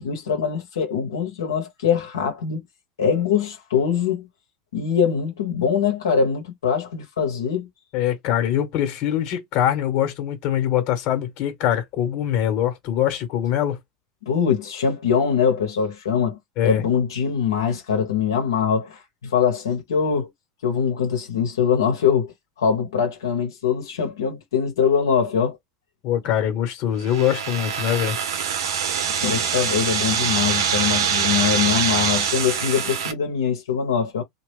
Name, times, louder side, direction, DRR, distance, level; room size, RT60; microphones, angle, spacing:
voice 1, 0.0-2.6 3.0-4.3 4.7-7.7 14.3-16.4 16.6-20.3 20.6-25.6 29.1-34.2, left 7 dB, 85° left, 1.0 m, -23 dB
voice 2, 7.9-13.8 16.6-16.8 26.0-28.2, left 11 dB, 55° left, 1.2 m, -23 dB
sound 1, 27.0-33.1, right 7 dB, 80° right, 0.6 m, -24 dB
2.9 x 2.3 x 3.3 m
hypercardioid pair, 95°, 2 cm